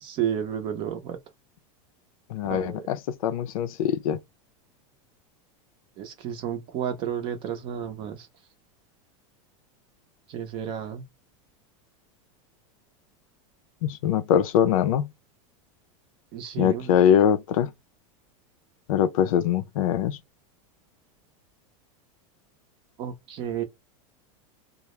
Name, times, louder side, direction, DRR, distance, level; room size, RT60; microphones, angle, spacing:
voice 1, 0.0-1.2 2.4-2.8 6.0-8.3 10.3-11.0 16.3-16.9 23.0-23.6, right 9 dB, 30° right, 0.5 m, -31 dB
voice 2, 2.3-3.0 3.2-4.2 13.8-15.1 16.6-17.7 18.9-20.2, left 9 dB, 90° left, 0.5 m, -22 dB
2.2 x 2.0 x 3.0 m
supercardioid pair, 165°, 17 cm